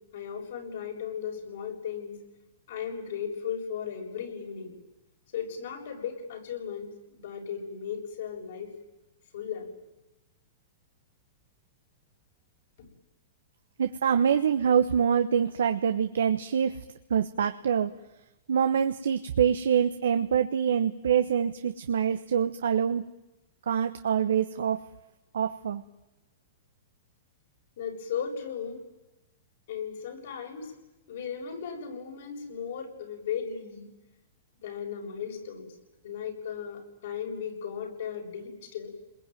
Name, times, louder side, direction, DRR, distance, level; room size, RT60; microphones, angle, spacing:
voice 1, 0.1-2.2 2.7-4.7 5.3-8.7 9.3-9.7 27.8-28.8 29.7-30.7 31.1-33.9 34.6-35.7 36.0-38.9, left 7 dB, 70° left, 2 dB, 7.4 m, -36 dB
voice 2, 13.8-16.8 17.1-17.9 18.5-23.0 23.7-24.8 25.3-25.8, right 8 dB, 80° right, 9 dB, 1.1 m, -25 dB
29.5 x 21.0 x 9.3 m, 0.99 s
hypercardioid pair, 120°, 0 cm